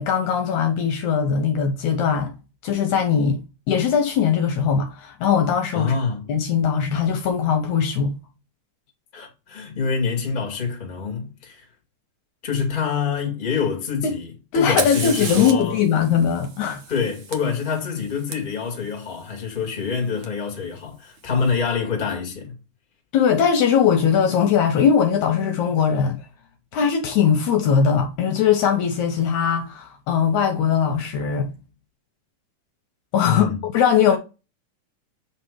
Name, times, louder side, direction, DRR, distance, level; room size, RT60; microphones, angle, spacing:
voice 1, 0.0-2.3 2.6-3.4 3.7-5.9 6.3-8.2 14.5-16.8 23.1-26.3 26.7-31.5 33.1-33.5 33.7-34.2, left 7 dB, 70° left, 2.0 m, -20 dB
voice 2, 5.7-6.3 9.1-11.6 12.4-14.3 14.5-15.8 16.9-22.6 33.2-33.6, left 6 dB, 20° left, 1.5 m, -26 dB
Fire, 14.5-18.3 20.2-20.3 21.2-21.6, right 5 dB, 60° right, 1.4 m, -33 dB
8.1 x 3.4 x 4.6 m
omnidirectional pair, 3.8 m